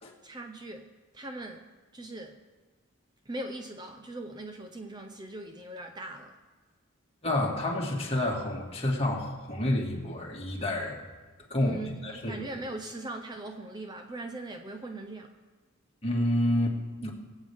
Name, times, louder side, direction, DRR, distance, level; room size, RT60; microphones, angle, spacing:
voice 1, 0.2-2.4 3.3-6.4 11.6-15.4, right 2 dB, 20° right, 0.6 m, -40 dB
voice 2, 7.2-11.0 11.5-11.8 12.0-12.4 16.0-17.1, left 1 dB, 30° left, 2.0 m, -29 dB
23.0 x 8.3 x 3.5 m
head